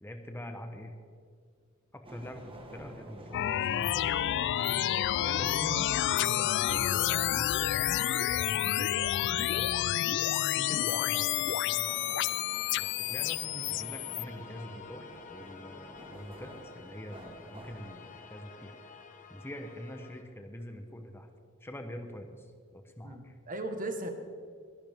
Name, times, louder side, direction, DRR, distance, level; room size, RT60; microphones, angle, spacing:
voice 1, 0.0-0.9 1.9-4.2 5.2-5.8 6.3-7.7 8.4-8.9 9.3-12.0 12.8-15.0 15.3-18.8 19.3-21.3 21.6-23.4, equal, 10° left, 5 dB, 0.9 m, -45 dB
sound 1, 2.0-18.2, right 1 dB, 25° right, 1.6 m, -51 dB
sound 2, 3.3-14.2, left 12 dB, 55° left, 0.3 m, -29 dB
sound 3, 10.2-20.2, left 5 dB, 40° left, 1.1 m, -51 dB
voice 2, 23.0-24.1, right 2 dB, 40° right, 6 dB, 1.4 m, -38 dB
21.0 x 11.0 x 3.6 m, 2.2 s
head